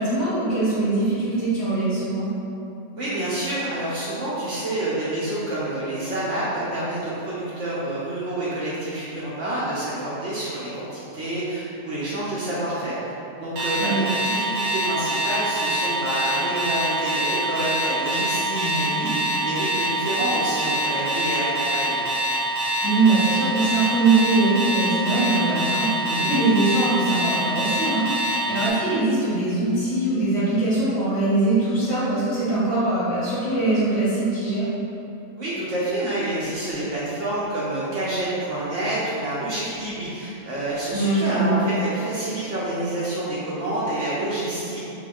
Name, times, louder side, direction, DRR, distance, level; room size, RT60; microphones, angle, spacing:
voice 1, 0.0-2.3 13.8-14.0 18.5-19.1 22.8-34.7 40.9-41.6, right 2 dB, 60° left, -12 dB, 1.9 m, -22 dB
voice 2, 2.9-13.1 13.4-22.1 26.0-26.3 35.4-44.8, right 1 dB, 60° right, -8 dB, 0.9 m, -28 dB
Alarm, 13.6-28.7, right 1 dB, 80° right, 1.2 m, -25 dB
5.7 x 2.3 x 2.3 m, 2.9 s
omnidirectional pair, 1.6 m